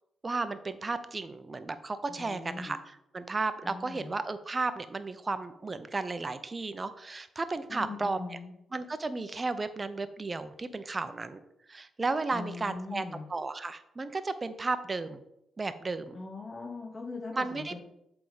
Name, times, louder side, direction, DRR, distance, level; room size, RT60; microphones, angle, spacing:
voice 1, 0.2-8.2 8.7-11.4 11.7-13.0 13.3-15.2 15.6-16.2 17.3-17.8, right 3 dB, 35° right, 12 dB, 0.7 m, -34 dB
voice 2, 2.2-2.8 3.6-4.1 7.7-8.5 12.3-13.3 16.1-17.8, left 3 dB, 40° left, 0 dB, 1.2 m, -40 dB
7.7 x 3.6 x 4.9 m, 0.81 s
supercardioid pair, 50°, 0 cm